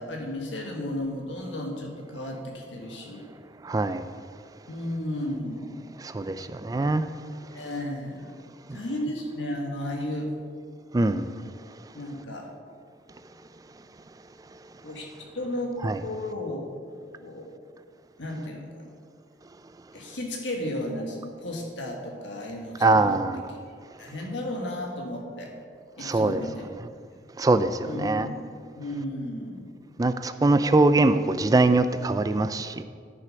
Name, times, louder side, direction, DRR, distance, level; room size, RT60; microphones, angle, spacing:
voice 1, 0.0-3.3 4.7-5.9 7.5-8.3 8.7-10.3 11.9-12.5 14.8-16.6 17.2-17.5 18.2-18.9 19.9-23.2 24.0-25.5 26.0-26.8 27.8-28.4 28.8-29.7, left 1 dB, 85° left, 1.6 m, -34 dB
voice 2, 3.7-4.0 6.1-7.0 10.9-11.3 15.8-16.0 22.8-23.4 26.0-26.4 27.4-28.3 30.0-32.8, right 2 dB, 20° right, 0.3 m, -22 dB
10.0 x 6.5 x 5.2 m
head